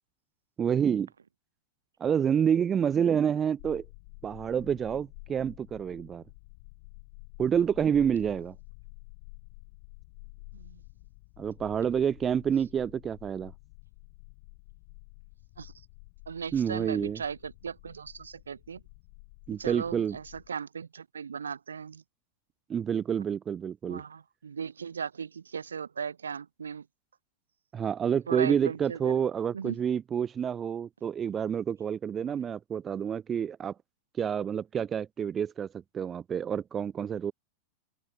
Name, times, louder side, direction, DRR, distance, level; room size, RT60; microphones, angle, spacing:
voice 1, 0.6-1.1 2.0-3.8 4.2-6.2 7.4-8.6 11.4-13.5 16.5-17.2 19.5-20.2 22.7-24.0 27.7-33.7 34.2-35.7 35.9-37.3, right 8 dB, 25° right, 0.4 m, -28 dB
sound 1, 3.6-20.5, left 29 dB, 45° left, 1.3 m, -51 dB
voice 2, 16.3-18.8 19.6-22.0 23.8-26.8 28.3-29.2 29.5-29.8, right 6 dB, 70° right, 0.8 m, -37 dB
figure-of-eight pair, 90°, 0 cm